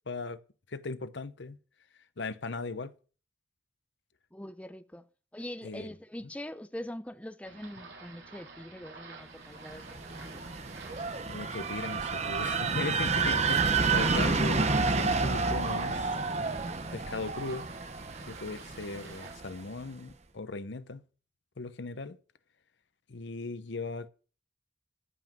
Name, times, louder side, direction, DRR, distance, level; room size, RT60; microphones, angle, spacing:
voice 1, 0.1-0.4 0.7-1.6 2.2-2.9 5.6-5.9 11.3-16.1 16.9-17.7 18.2-21.0 21.6-22.2 23.1-24.1, left 3 dB, 70° left, 0.8 m, -38 dB
voice 2, 4.3-5.1 5.3-10.4, left 1 dB, 5° left, 0.6 m, -43 dB
sound 1, 7.4-19.3, right 3 dB, 70° right, 4.0 m, -50 dB
sound 2, 9.7-19.5, right 4 dB, 35° right, 1.0 m, -30 dB
14.0 x 5.9 x 7.5 m
head